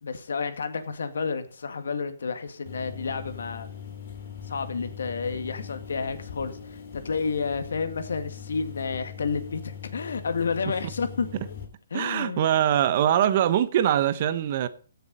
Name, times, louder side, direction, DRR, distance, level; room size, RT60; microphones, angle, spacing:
voice 1, 0.0-3.7 4.5-11.3 11.9-12.5, left 5 dB, 75° left, 2.1 m, -30 dB
sound 1, 2.7-11.7, left 7 dB, 40° left, 3.2 m, -41 dB
voice 2, 11.9-14.7, right 10 dB, 35° right, 0.8 m, -22 dB
15.5 x 7.0 x 5.4 m
hypercardioid pair, 170°, 0 cm